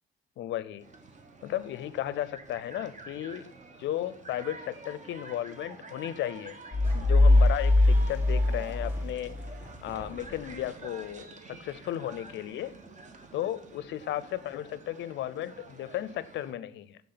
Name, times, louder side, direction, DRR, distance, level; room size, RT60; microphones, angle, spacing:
voice 1, 0.4-0.8 1.4-3.5 3.8-6.6 6.9-9.3 9.8-12.7 13.3-17.0, left 12 dB, 65° left, 0.5 m, -34 dB
sound 1, 0.8-16.5, right 3 dB, 40° right, 1.0 m, -48 dB
sound 2, 6.7-9.5, left 2 dB, 20° left, 0.6 m, -22 dB
sound 3, 6.8-11.1, equal, 10° right, 1.1 m, -50 dB
7.6 x 3.4 x 3.9 m
cardioid pair, 90°, 20 cm